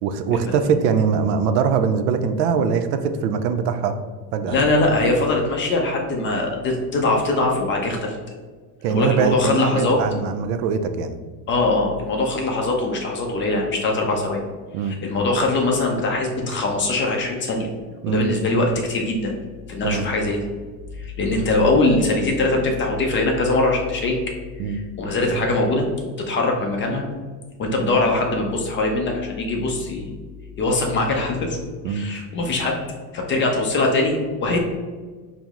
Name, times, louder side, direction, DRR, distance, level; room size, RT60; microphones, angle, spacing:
voice 1, 0.0-4.0 4.3-4.6 8.8-11.2 14.7-15.0 18.0-18.3 19.8-20.1 24.6-24.8 31.8-32.1, right 6 dB, 80° right, 9 dB, 0.5 m, -22 dB
voice 2, 4.5-8.2 8.9-10.0 11.5-14.4 14.8-17.7 18.1-19.3 19.7-20.4 21.0-24.2 24.6-25.9 26.2-27.0 27.6-30.1 30.6-31.6 31.9-32.8 33.1-34.6, left 2 dB, 25° left, 1 dB, 0.4 m, -22 dB
4.5 x 2.0 x 3.5 m, 1.4 s
supercardioid pair, 115°, 49 cm